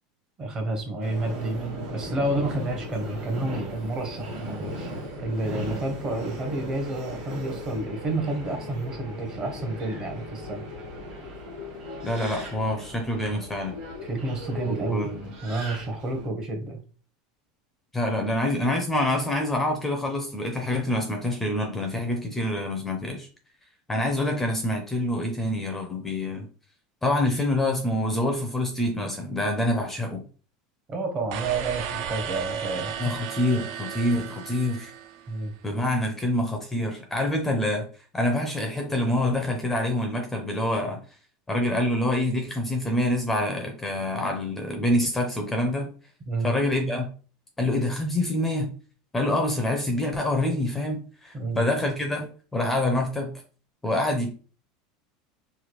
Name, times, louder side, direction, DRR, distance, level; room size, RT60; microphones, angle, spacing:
voice 1, 0.4-4.9 5.2-10.7 13.3-13.4 14.0-15.1 15.4-16.8 30.9-33.3 35.3-35.5 46.3-46.5 51.3-51.6, right 2 dB, 25° right, 4 dB, 0.7 m, -30 dB
Subway metro underground, 1.0-16.3, equal, 45° right, 1.2 m, -37 dB
voice 2, 12.0-13.7 14.7-15.3 17.9-23.3 23.9-26.5 27.0-30.2 33.0-34.9 35.6-37.9 38.1-41.0 41.5-45.9 46.4-47.1 47.6-48.7 49.1-53.3 53.8-54.3, left 1 dB, 10° left, 3 dB, 0.4 m, -26 dB
sound 1, 31.3-35.5, right 8 dB, 70° right, 0.4 m, -34 dB
3.1 x 2.2 x 2.9 m, 0.39 s
supercardioid pair, 145°, 3 cm